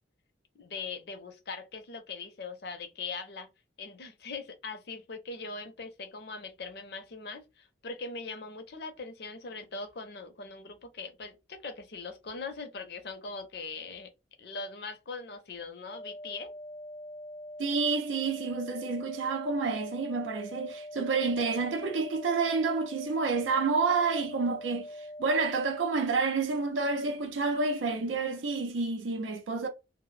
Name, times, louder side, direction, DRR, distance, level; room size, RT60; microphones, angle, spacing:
voice 1, 0.6-3.5 3.8-14.1 14.4-16.5, left 4 dB, 55° left, 0.5 m, -41 dB
sound 1, 15.9-25.9, equal, 30° right, 0.6 m, -43 dB
voice 2, 17.6-24.9 25.2-29.7, right 4 dB, 85° right, 0.5 m, -29 dB
2.1 x 2.0 x 3.1 m
head